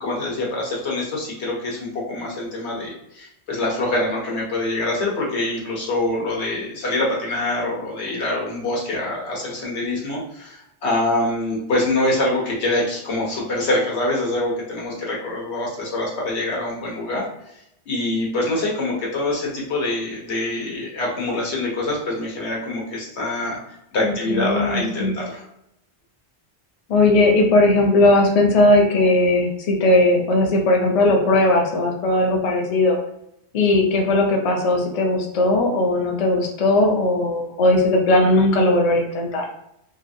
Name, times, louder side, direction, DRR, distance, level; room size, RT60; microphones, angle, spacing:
voice 1, 0.0-17.2 17.9-23.6 23.9-25.4, left 2 dB, 80° left, -3 dB, 1.2 m, -25 dB
voice 2, 24.0-25.2 26.9-33.0 33.5-39.4, left 2 dB, 50° left, 1 dB, 0.5 m, -18 dB
3.0 x 2.3 x 2.6 m, 0.78 s
omnidirectional pair, 1.1 m